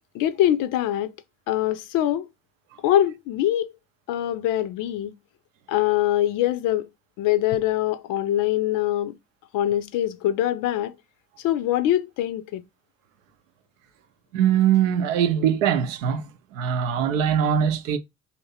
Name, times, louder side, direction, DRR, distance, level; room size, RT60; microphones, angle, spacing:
voice 1, 0.1-1.1 1.5-2.3 2.8-3.7 4.1-5.1 5.7-6.9 7.2-9.2 9.5-10.9 11.4-12.6, left 12 dB, 55° left, 0.5 m, -23 dB
voice 2, 14.3-18.0, right 9 dB, 75° right, 0.6 m, -22 dB
2.7 x 2.6 x 4.0 m
figure-of-eight pair, 45°, 39 cm